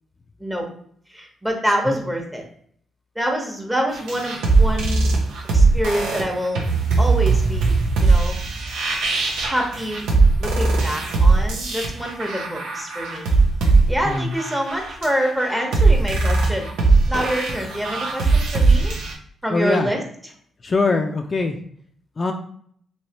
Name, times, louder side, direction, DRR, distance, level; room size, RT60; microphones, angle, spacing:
voice 1, 1.1-2.4 3.1-5.1 5.5-6.6 7.0-7.7 8.0-8.4 9.4-10.1 10.4-13.3 13.9-16.7 17.1-19.0 19.4-20.0, equal, 10° right, 1 dB, 0.9 m, -26 dB
sound 1, 3.9-19.1, right 3 dB, 90° right, 0.6 m, -19 dB
voice 2, 14.0-14.4 19.5-19.9 20.6-21.6 22.2-22.3, left 3 dB, 40° left, 4 dB, 0.3 m, -22 dB
3.1 x 2.8 x 2.9 m, 0.62 s
cardioid pair, 75°, 0 cm